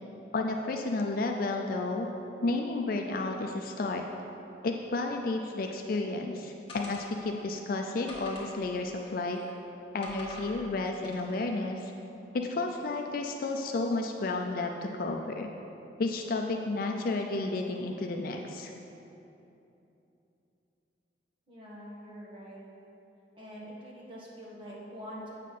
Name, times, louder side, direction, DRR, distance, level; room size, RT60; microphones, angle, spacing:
voice 1, 0.3-2.1 2.4-4.0 4.6-9.4 9.9-11.9 12.3-15.5 16.0-18.7, left 2 dB, 55° left, 2 dB, 0.4 m, -32 dB
sound 1, 6.7-7.5 8.1-9.5 10.0-10.6 11.0-11.5, left 2 dB, 30° left, 1.5 m, -47 dB
voice 2, 21.5-22.6 23.3-25.3, equal, 30° right, -6 dB, 1.6 m, -45 dB
8.1 x 6.5 x 4.1 m, 3.0 s
head